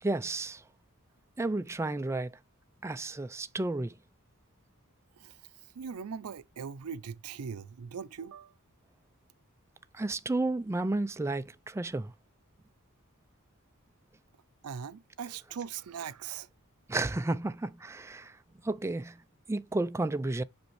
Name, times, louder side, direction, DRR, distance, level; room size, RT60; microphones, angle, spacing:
voice 1, 0.0-0.6 1.4-2.4 2.8-3.9 9.9-12.1 16.9-18.4 18.6-19.2 19.5-20.4, right 2 dB, 10° right, 0.3 m, -32 dB
voice 2, 5.8-8.5 14.6-16.5, right 7 dB, 85° right, 0.5 m, -40 dB
6.4 x 5.2 x 3.1 m
head